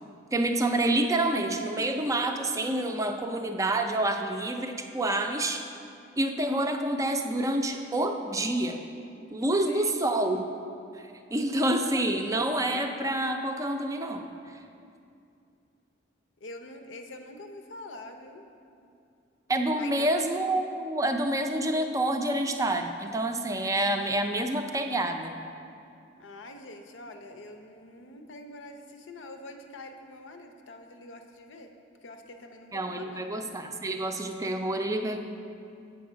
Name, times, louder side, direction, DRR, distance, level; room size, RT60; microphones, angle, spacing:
voice 1, 0.3-5.7 6.2-8.8 9.3-10.5 10.9-11.0 11.3-14.3 19.5-25.4 32.7-35.2, right 1 dB, 15° right, 5 dB, 0.4 m, -28 dB
voice 2, 9.6-10.2 16.4-18.5 19.8-20.3 26.2-31.7 32.0-33.3, left 2 dB, 85° left, 6 dB, 0.7 m, -45 dB
7.8 x 4.7 x 6.2 m, 2.5 s
head